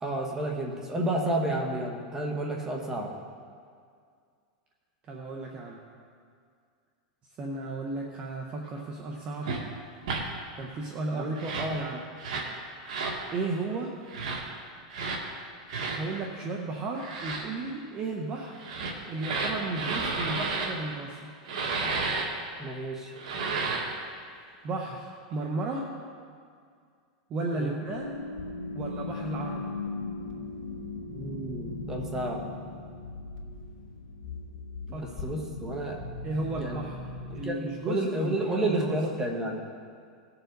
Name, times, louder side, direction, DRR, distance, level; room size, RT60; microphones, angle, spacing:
voice 1, 0.0-3.1 11.1-11.3 22.6-23.1 27.6-27.8 31.1-32.5 34.9-36.0 36.6-36.8 37.3-39.6, right 1 dB, 15° right, 0 dB, 1.4 m, -31 dB
voice 2, 5.1-5.8 7.4-9.5 10.6-12.1 13.3-13.9 15.8-18.5 19.1-21.3 24.6-25.9 27.3-28.2 28.7-29.7 34.9-35.2 36.2-37.0 37.3-39.0, right 2 dB, 30° right, 0 dB, 1.0 m, -34 dB
sound 1, 9.4-9.6 10.0-10.2 11.3-11.7 12.2-12.5 12.9-13.2 14.1-14.4 14.9-15.2 15.7-16.0 17.0-17.4 18.5-20.7 21.5-22.3 23.1-23.9, right 4 dB, 70° right, 1.8 m, -31 dB
sound 2, 27.9-37.5, left 3 dB, 60° left, 1.8 m, -38 dB
18.0 x 7.0 x 4.0 m, 2.2 s
supercardioid pair, 150°, 4 cm